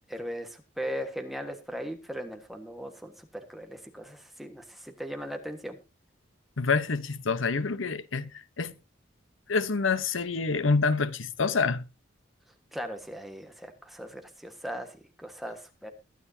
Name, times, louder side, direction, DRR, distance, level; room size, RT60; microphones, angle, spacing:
voice 1, 0.1-5.8 12.7-15.9, equal, ahead, 1.4 m, -38 dB
voice 2, 6.6-8.3 8.6-8.7 9.5-11.8, left 4 dB, 90° left, 0.9 m, -27 dB
22.0 x 9.4 x 2.8 m
head